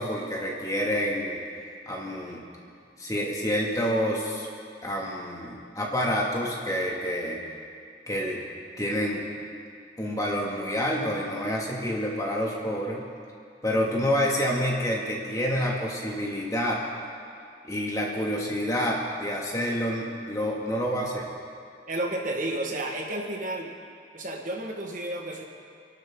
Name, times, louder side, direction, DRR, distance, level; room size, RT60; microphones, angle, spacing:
voice 1, 0.0-1.4 1.9-2.4 3.0-4.5 4.8-7.4 8.1-8.4 8.8-9.3 10.0-13.0 13.6-16.8 17.6-21.2, equal, 20° left, -3 dB, 2.3 m, -28 dB
voice 2, 21.9-23.7 24.1-25.4, right 1 dB, 45° right, 0 dB, 1.6 m, -31 dB
28.0 x 12.0 x 3.9 m, 2.3 s
head